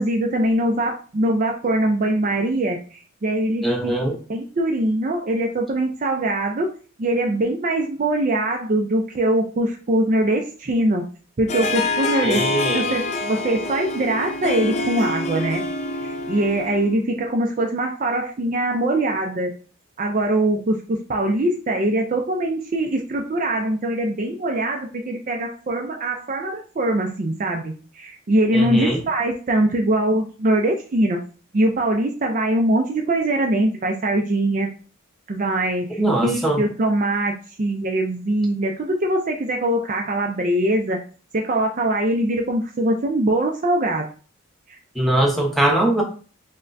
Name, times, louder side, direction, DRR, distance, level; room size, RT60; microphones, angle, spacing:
voice 1, 0.0-3.9 4.3-6.7 7.0-11.0 11.4-15.6 16.0-19.5 20.0-31.2 31.5-34.7 35.3-41.0 41.3-44.1 44.7-44.8, right 1 dB, 35° right, 2 dB, 0.4 m, -22 dB
voice 2, 3.6-4.2 12.2-12.8 28.5-29.0 36.0-36.6 45.0-46.0, right 1 dB, ahead, -1 dB, 0.8 m, -21 dB
Harp, 11.5-17.0, left 2 dB, 30° left, 0.3 m, -26 dB
6.3 x 2.1 x 2.5 m, 0.39 s
head